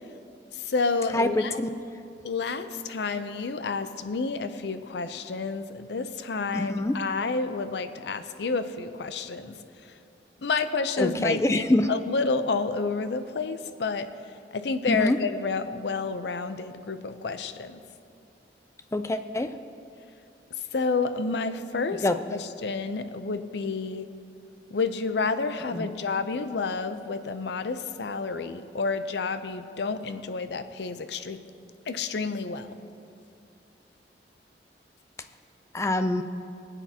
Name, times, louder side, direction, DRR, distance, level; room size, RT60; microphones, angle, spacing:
voice 1, 0.5-1.6 2.2-9.5 10.4-14.1 14.5-17.8 20.7-24.1 24.7-31.4 31.9-32.7, left 4 dB, 70° left, 11 dB, 0.5 m, -30 dB
voice 2, 1.1-1.7 6.5-7.0 11.0-11.9 14.9-15.2 18.9-19.5 22.0-22.1 25.7-25.9 35.7-36.2, left 1 dB, 15° left, 9 dB, 0.3 m, -25 dB
21.0 x 8.3 x 2.8 m, 2.6 s
head